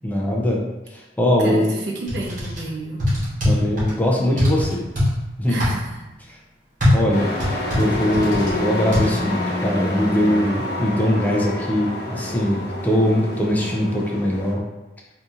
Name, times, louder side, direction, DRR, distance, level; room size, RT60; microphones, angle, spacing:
voice 1, 0.0-0.6 0.9-1.7 3.4-4.9 5.4-5.6 6.9-7.3 7.8-14.6, left 1 dB, 10° left, -2 dB, 0.4 m, -21 dB
voice 2, 1.4-3.2 5.5-6.0, right 2 dB, 75° right, -2 dB, 0.7 m, -31 dB
sound 1, 2.1-2.6 3.0-3.9 4.4-5.1 5.6-5.8 6.8-8.5 8.9-9.1, left 1 dB, 45° right, 1.3 m, -20 dB
Truck, 7.1-14.5, left 1 dB, 60° left, 1.0 m, -28 dB
3.8 x 2.7 x 2.4 m, 1.0 s
head